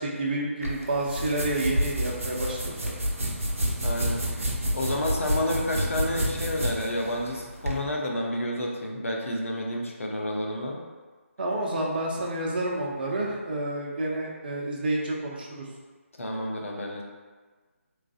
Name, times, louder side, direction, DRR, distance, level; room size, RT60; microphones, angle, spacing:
voice 1, 0.0-3.0 11.4-15.7, right 1 dB, 45° right, -2 dB, 0.7 m, -29 dB
sound 1, 0.6-7.8, equal, 75° right, 0.7 m, -29 dB
voice 2, 3.8-4.5 4.7-10.8 16.2-17.0, left 1 dB, 70° left, 0 dB, 0.7 m, -30 dB
3.5 x 3.2 x 2.3 m, 1.4 s
figure-of-eight pair, 150°, 8 cm